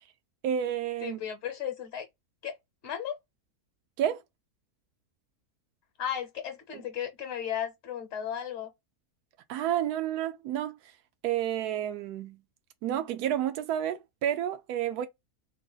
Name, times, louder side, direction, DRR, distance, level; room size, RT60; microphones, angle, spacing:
voice 1, 0.4-1.2 4.0-4.2 9.5-10.8 11.2-12.4 12.8-15.1, right 10 dB, 85° right, 1.1 m, -30 dB
voice 2, 1.0-2.1 2.4-2.6 2.8-3.2 6.0-8.7, left 9 dB, 50° left, 1.0 m, -35 dB
3.8 x 2.0 x 3.8 m
omnidirectional pair, 1.6 m